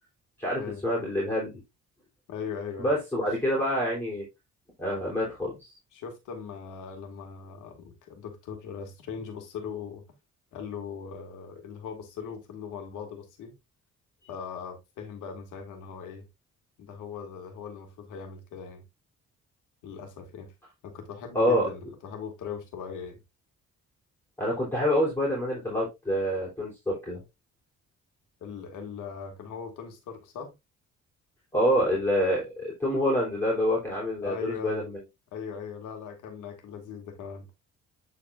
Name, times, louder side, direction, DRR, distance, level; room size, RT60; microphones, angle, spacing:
voice 1, 0.4-1.5 2.8-4.2 4.8-5.7 21.3-21.7 24.4-27.2 31.5-35.0, equal, 5° left, 3.4 m, -27 dB
voice 2, 2.3-2.9 5.9-10.0 10.5-13.6 14.3-16.2 16.8-18.8 19.8-20.5 20.8-23.2 28.4-30.5 34.2-34.9 35.3-37.5, left 6 dB, 85° left, 1.9 m, -39 dB
10.0 x 4.1 x 2.4 m
cardioid pair, 90°, 30 cm